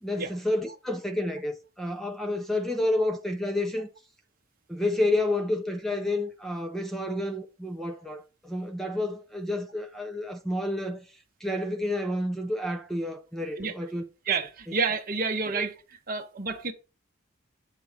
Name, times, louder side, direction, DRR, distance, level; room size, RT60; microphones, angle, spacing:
voice 1, 0.0-3.9 4.7-11.0 11.4-14.0 15.5-15.6, left 1 dB, ahead, 0.5 m, -30 dB
voice 2, 14.3-15.7 16.1-16.7, right 4 dB, 45° right, 0.8 m, -29 dB
8.1 x 3.0 x 4.9 m
head